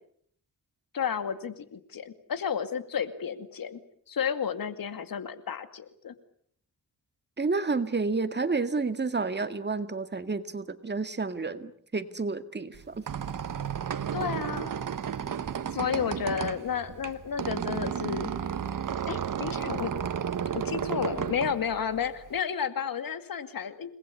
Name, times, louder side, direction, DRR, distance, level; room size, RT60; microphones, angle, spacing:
voice 1, 0.9-3.8 4.1-6.1 14.1-14.7 15.7-18.3 19.1-19.9 20.5-23.9, left 7 dB, 75° left, 10 dB, 2.3 m, -32 dB
voice 2, 7.4-13.0, right 4 dB, 30° right, 10 dB, 2.0 m, -30 dB
Squeak, 12.7-22.4, right 8 dB, 65° right, 1.5 m, -33 dB
29.5 x 20.0 x 8.4 m, 0.65 s
wide cardioid pair, 115°, 34 cm